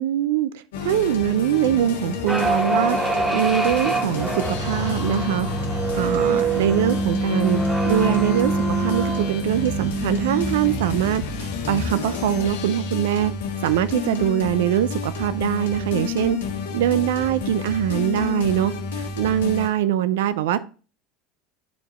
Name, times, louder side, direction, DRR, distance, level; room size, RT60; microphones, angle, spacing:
voice 1, 0.0-0.5 0.8-5.5 5.9-7.6 7.8-13.3 13.6-16.4 16.7-20.6, right 11 dB, 75° right, 14 dB, 0.6 m, -23 dB
sound 1, 0.7-19.7, left 5 dB, 75° left, 1.5 m, -30 dB
sound 2, 2.3-11.0, right 3 dB, 20° right, 1.6 m, -25 dB
10.5 x 4.7 x 3.2 m, 0.36 s
hypercardioid pair, 80°, 0 cm